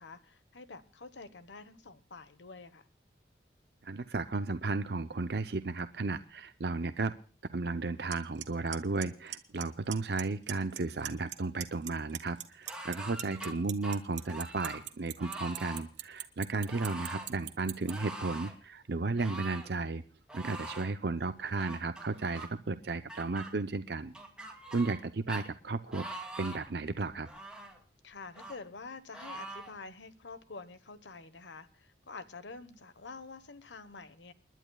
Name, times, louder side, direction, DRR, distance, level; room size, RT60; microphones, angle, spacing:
voice 1, 0.0-2.9 28.0-34.3, left 3 dB, 90° left, 1.1 m, -48 dB
voice 2, 3.8-7.1 7.5-20.0 20.3-24.1 24.7-26.1 26.4-27.3, right 3 dB, 60° right, 0.6 m, -34 dB
Clock, 8.1-8.2 8.4-8.8 9.0-9.6 9.9-10.2 10.5-11.3 11.6-17.9, right 13 dB, 85° right, 1.3 m, -38 dB
sound 1, 12.7-13.5 13.8-14.8 15.2-15.8 16.7-17.3 17.9-18.6 19.2-19.7 20.3-20.9 21.6-22.5 23.1-23.5 24.1-25.0 25.3-25.4 25.9-26.7 27.2-27.8 28.4-28.6 29.1-29.7, right 1 dB, 5° right, 2.6 m, -43 dB
29.5 x 11.0 x 2.3 m
head